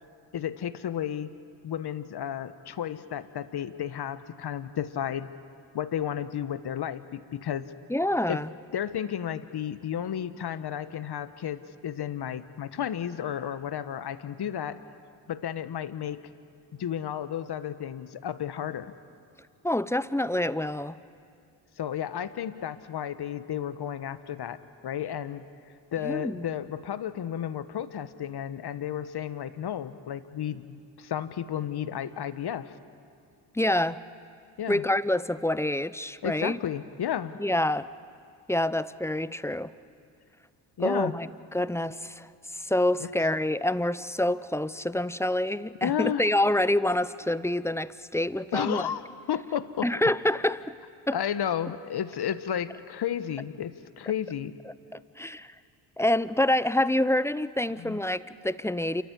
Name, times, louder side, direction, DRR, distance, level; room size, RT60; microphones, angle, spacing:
voice 1, 0.3-1.3 1.6-5.3 5.7-7.7 8.3-8.4 8.7-14.8 15.3-16.2 16.7-18.9 21.8-25.4 25.9-32.7 34.6-34.8 36.2-37.3 40.8-41.1 43.0-43.1 45.8-46.2 48.5-49.0 49.3-49.9 51.1-54.5 57.8-58.0, left 9 dB, 50° left, 13 dB, 1.3 m, -32 dB
voice 2, 7.9-8.5 19.6-21.0 26.0-26.5 33.5-34.0 34.7-36.6 37.4-37.9 38.5-39.7 40.8-48.8 49.8-50.7 51.1-51.2 54.9-55.5 56.0-59.0, left 1 dB, 5° left, 16 dB, 0.7 m, -27 dB
28.0 x 14.0 x 9.9 m, 2.3 s
hypercardioid pair, 50°, 50 cm